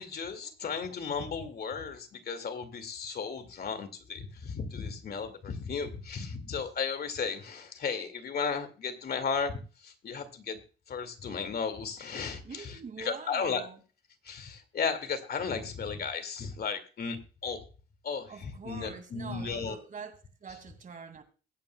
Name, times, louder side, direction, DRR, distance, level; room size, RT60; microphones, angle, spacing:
voice 1, 0.0-9.6 9.8-10.6 10.9-13.7 14.2-17.2 17.4-17.6 18.0-19.8, left 5 dB, 50° left, 2.3 m, -35 dB
voice 2, 12.4-13.8 18.3-21.2, right 5 dB, 40° right, 2.4 m, -44 dB
21.5 x 8.8 x 2.3 m
cardioid pair, 90°, 20 cm